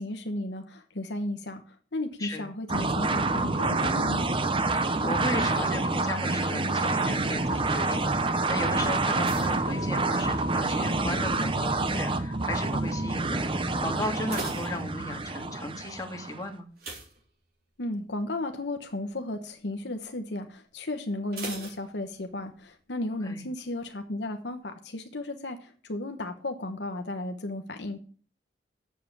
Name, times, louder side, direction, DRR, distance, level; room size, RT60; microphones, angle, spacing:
voice 1, 0.0-1.6 1.9-4.3 17.8-28.0, left 1 dB, 65° left, 6 dB, 1.1 m, -34 dB
sound 1, 2.7-16.4, right 3 dB, 30° right, 0.8 m, -27 dB
voice 2, 4.7-16.7 23.2-23.4, left 1 dB, 20° left, 1 dB, 2.0 m, -35 dB
sound 2, 9.2-10.7 10.9-11.4 12.0-12.4 12.7-12.8 13.2-13.3 13.9-15.5 16.7-17.9 18.3-18.5 18.9-19.0 21.3-22.5 22.8-22.9, right 3 dB, 55° right, 3.7 m, -42 dB
7.6 x 7.3 x 8.2 m, 0.42 s
head